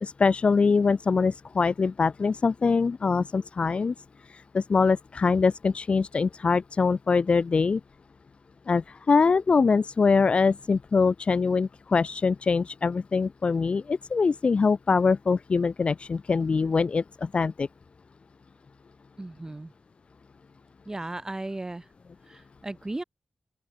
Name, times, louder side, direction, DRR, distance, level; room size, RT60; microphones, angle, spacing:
voice 1, 0.0-3.9 4.3-7.8 8.7-17.7, left 4 dB, 60° left, 0.9 m, -23 dB
voice 2, 19.2-19.7 20.9-21.9 22.3-23.0, right 2 dB, 25° right, 2.0 m, -36 dB
open air
cardioid pair, 40°, 2 cm